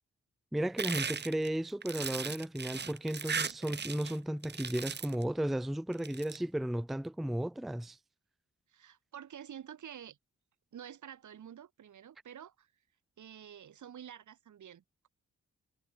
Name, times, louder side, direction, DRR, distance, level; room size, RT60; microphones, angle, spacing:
voice 1, 0.5-8.0, right 1 dB, ahead, 0.4 m, -34 dB
sound 1, 0.8-4.2 4.4-5.2 5.9-6.4, right 6 dB, 35° right, 1.4 m, -37 dB
voice 2, 8.7-10.2 10.7-12.7 13.2-15.1, right 9 dB, 85° right, 5.5 m, -49 dB
wide cardioid pair, 160°, 29 cm